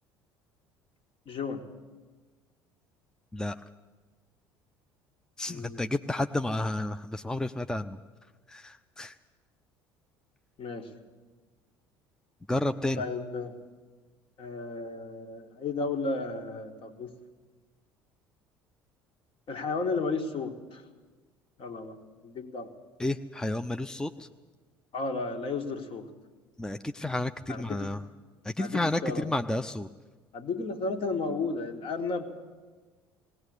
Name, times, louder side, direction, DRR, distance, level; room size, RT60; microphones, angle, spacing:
voice 1, 1.3-1.7 5.5-5.9 10.6-10.9 13.0-13.6 14.4-17.1 19.5-20.8 21.6-22.0 22.2-22.7 24.9-26.1 27.5-27.9 28.6-29.3 30.3-32.3, left 3 dB, 45° left, 7 dB, 2.1 m, -33 dB
voice 2, 5.4-8.0 8.5-9.1 12.5-13.0 23.0-24.3 26.6-28.0 28.4-29.9, left 2 dB, 5° left, 9 dB, 0.6 m, -31 dB
19.0 x 18.5 x 8.2 m, 1.4 s
figure-of-eight pair, 60°, 13 cm